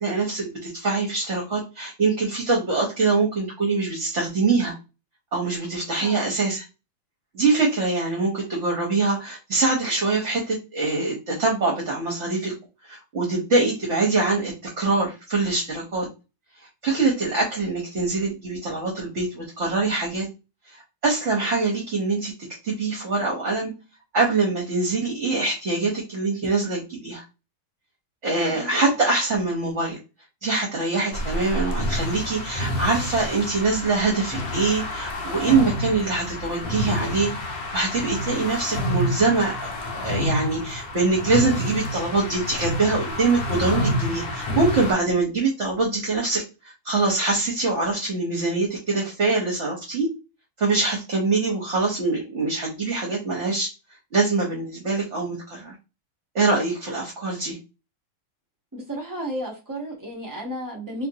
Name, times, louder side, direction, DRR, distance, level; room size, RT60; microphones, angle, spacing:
voice 1, 0.0-4.7 5.3-6.6 7.3-12.6 12.8-16.1 16.8-20.3 20.7-22.3 22.6-23.7 24.1-27.2 28.2-30.0 30.4-37.3 37.7-46.4 46.8-50.1 50.6-53.7 54.1-55.7 56.3-57.6, right 3 dB, 50° right, -2 dB, 1.0 m, -24 dB
sound 1, 31.1-44.9, left 1 dB, 85° left, 1.3 m, -28 dB
voice 2, 58.7-61.1, equal, 25° right, -2 dB, 0.4 m, -33 dB
3.0 x 2.5 x 2.7 m, 0.29 s
omnidirectional pair, 1.9 m